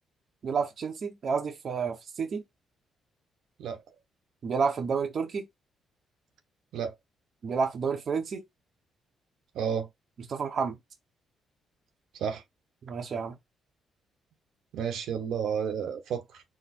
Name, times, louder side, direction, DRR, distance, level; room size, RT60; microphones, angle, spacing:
voice 1, 0.4-2.4 4.4-5.4 7.4-8.4 10.3-10.8 12.8-13.4, right 5 dB, 50° right, 0.8 m, -30 dB
voice 2, 3.6-4.0 6.7-6.9 9.5-9.9 12.1-12.4 14.7-16.4, right 7 dB, 80° right, 1.0 m, -31 dB
4.3 x 2.1 x 4.3 m
cardioid pair, 110°, 0 cm